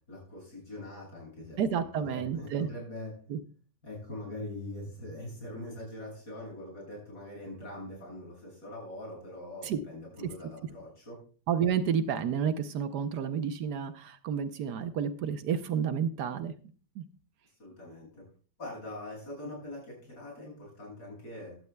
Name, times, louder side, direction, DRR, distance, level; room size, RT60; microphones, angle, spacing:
voice 1, 0.1-3.1 3.8-11.2 17.6-18.3 18.6-21.6, left 1 dB, 65° left, -3 dB, 7.3 m, -43 dB
voice 2, 1.6-2.7 3.3-3.4 9.6-9.8 11.5-16.5 17.0-17.1, right 7 dB, 70° right, 10 dB, 1.3 m, -30 dB
15.5 x 12.0 x 2.2 m, 0.41 s
omnidirectional pair, 1.9 m